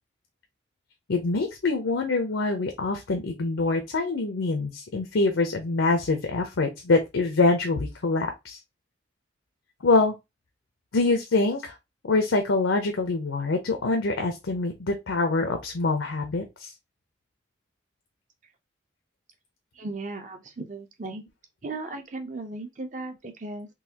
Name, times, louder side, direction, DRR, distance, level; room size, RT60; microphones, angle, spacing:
voice 1, 1.1-8.6 9.8-10.1 10.9-11.7 12.1-16.7, left 3 dB, 80° left, 0.6 m, -25 dB
voice 2, 19.8-21.2 21.6-23.7, right 2 dB, 40° right, 0.6 m, -36 dB
3.9 x 2.7 x 2.8 m
head